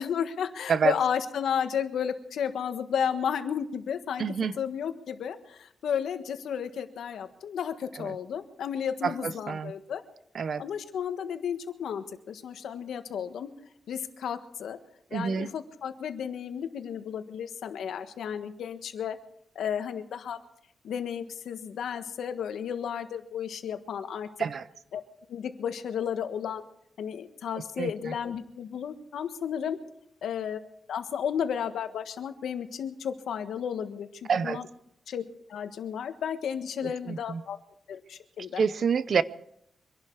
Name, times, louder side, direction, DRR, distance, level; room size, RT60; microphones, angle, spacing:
voice 1, 0.0-4.2 4.6-10.0 10.6-13.5 13.9-14.8 15.1-19.2 19.5-20.4 20.8-24.3 24.9-25.0 25.3-26.6 27.0-29.8 30.2-30.6 30.9-34.6 35.1-35.2 35.5-37.6 37.9-38.6, left 8 dB, 85° left, 1.4 m, -33 dB
voice 2, 4.2-4.6 8.0-8.2 9.0-9.7 10.3-10.6 15.1-15.5 24.4-24.7 27.8-28.1 34.3-34.6 36.8-37.4 38.6-39.2, right 6 dB, 55° right, 0.7 m, -28 dB
25.0 x 11.5 x 4.7 m
cardioid pair, 115°, 0 cm